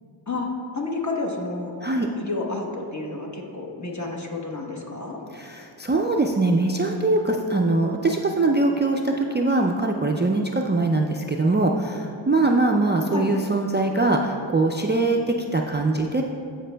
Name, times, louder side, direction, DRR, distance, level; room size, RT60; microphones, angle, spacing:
voice 1, 0.3-1.7 2.2-5.2 13.1-13.3, left 3 dB, 35° left, -1 dB, 1.1 m, -30 dB
voice 2, 5.3-16.2, right 2 dB, 25° right, 0 dB, 0.3 m, -22 dB
14.0 x 5.1 x 2.2 m, 2.7 s
wide cardioid pair, 40°, 47 cm